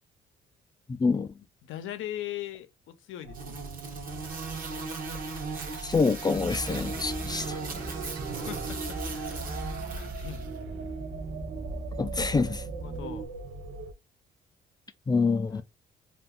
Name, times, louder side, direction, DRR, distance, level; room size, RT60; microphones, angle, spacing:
voice 1, 0.9-1.3 5.8-7.6 12.0-12.6 15.1-15.6, left 4 dB, 20° left, 0.3 m, -26 dB
voice 2, 1.6-2.7 3.0-3.6 8.3-10.5 12.2-12.5 12.8-13.3 15.5-15.6, left 12 dB, 80° left, 0.6 m, -40 dB
sound 1, 3.2-13.9, right 3 dB, 90° right, 0.5 m, -42 dB
sound 2, 3.3-10.5, right 4 dB, 45° right, 1.0 m, -38 dB
sound 3, 6.3-13.3, right 2 dB, 20° right, 0.7 m, -39 dB
2.5 x 2.3 x 3.4 m
cardioid pair, 90°, 20 cm